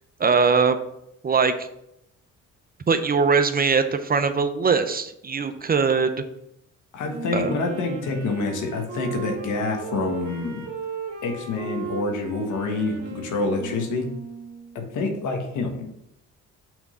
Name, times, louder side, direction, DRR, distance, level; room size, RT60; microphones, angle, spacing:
voice 1, 0.2-0.8 1.2-1.7 2.9-6.1 7.3-7.5, right 5 dB, 30° right, 9 dB, 0.6 m, -21 dB
voice 2, 6.9-10.6 11.2-14.1 14.7-15.9, left 3 dB, 75° left, 3 dB, 1.4 m, -27 dB
Wind instrument woodwind instrument, 7.1-14.8, right 5 dB, 75° right, 1.5 m, -36 dB
6.1 x 3.6 x 5.4 m, 0.79 s
cardioid pair, 90°, 30 cm